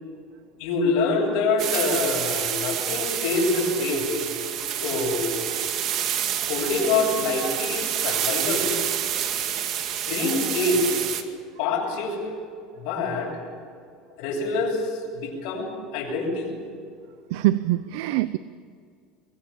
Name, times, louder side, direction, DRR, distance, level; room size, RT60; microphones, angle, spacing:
voice 1, 0.6-4.1 4.7-5.5 6.4-8.7 10.1-11.0 11.6-12.2 12.8-13.3 14.2-16.5, left 3 dB, 70° left, -4 dB, 7.8 m, -25 dB
sound 1, 1.6-11.2, right 10 dB, 50° right, 2.2 m, -28 dB
voice 2, 17.3-18.4, right 15 dB, 80° right, 14 dB, 0.7 m, -23 dB
23.0 x 22.5 x 7.3 m, 2.3 s
supercardioid pair, 135°, 0 cm